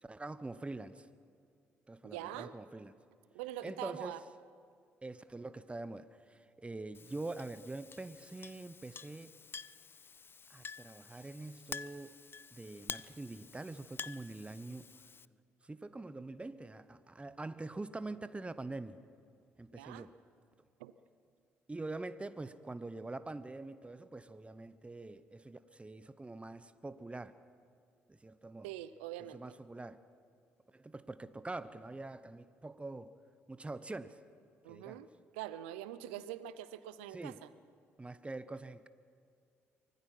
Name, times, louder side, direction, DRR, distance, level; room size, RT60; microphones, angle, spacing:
voice 1, 0.0-1.1 1.9-2.9 3.6-4.2 5.0-9.4 10.5-12.1 12.5-14.9 15.6-19.0 19.6-20.1 21.7-27.4 28.1-28.7 29.3-30.0 30.7-33.1 33.5-34.2 34.7-35.0 37.1-37.4 38.0-38.9, right 2 dB, 20° right, 14 dB, 1.0 m, -44 dB
voice 2, 2.0-2.5 3.3-4.2 19.7-20.1 20.8-20.9 28.6-29.4 34.6-35.1 35.3-37.5, right 13 dB, 80° right, 15 dB, 0.6 m, -44 dB
Chink clink, 6.9-15.3, left 5 dB, 35° left, 0.5 m, -49 dB
24.5 x 19.0 x 5.7 m, 2.3 s
hypercardioid pair, 45°, 6 cm